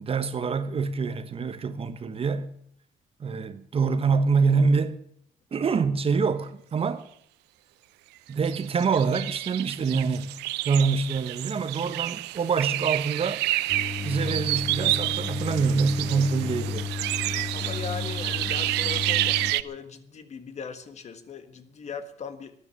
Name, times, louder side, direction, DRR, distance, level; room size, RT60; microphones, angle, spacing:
voice 1, 0.0-2.5 3.2-5.0 5.5-7.1 8.3-10.4 10.6-13.4 14.0-16.9, right 5 dB, 35° right, 1.2 m, -25 dB
sound 1, 8.4-19.6, right 18 dB, 90° right, 0.6 m, -29 dB
sound 2, 13.7-19.5, left 4 dB, 15° left, 1.7 m, -33 dB
voice 2, 17.5-22.5, left 6 dB, 40° left, 1.6 m, -39 dB
12.5 x 10.0 x 9.9 m
cardioid pair, 110°, 17 cm